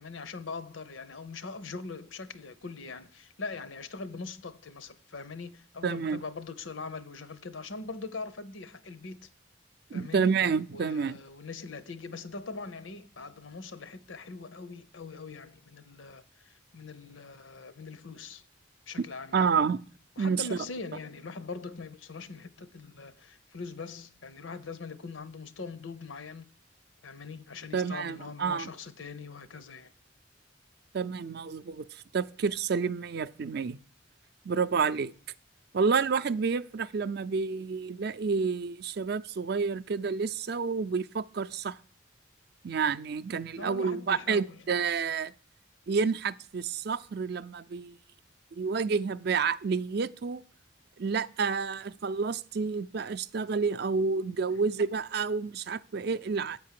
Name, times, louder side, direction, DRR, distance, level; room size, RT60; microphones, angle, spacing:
voice 1, 0.0-9.3 9.9-10.3 10.7-18.4 18.9-19.5 20.2-26.5 27.0-29.9 43.5-44.6, left 4 dB, 90° left, 0.8 m, -42 dB
voice 2, 5.8-6.2 9.9-11.2 19.3-19.8 20.2-20.6 27.7-28.7 30.9-33.8 34.5-35.1 35.7-41.8 42.6-45.3 45.9-48.0 48.5-50.4 51.0-56.6, right 5 dB, 55° right, 0.4 m, -29 dB
8.7 x 4.6 x 7.5 m
head